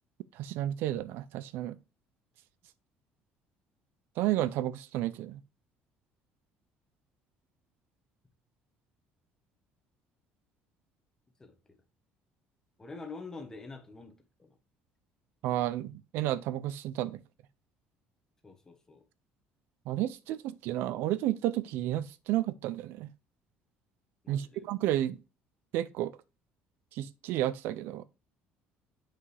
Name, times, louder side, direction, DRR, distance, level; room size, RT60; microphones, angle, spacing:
voice 1, 0.3-1.8 4.2-5.4 15.4-17.2 19.9-23.1 24.3-25.2 25.7-26.1 26.9-28.0, right 13 dB, 70° right, 0.4 m, -31 dB
voice 2, 11.4-11.8 12.8-14.6 18.4-19.0 24.2-24.7, left 3 dB, 15° left, 1.0 m, -46 dB
7.4 x 5.5 x 3.3 m
cardioid pair, 145°, 4 cm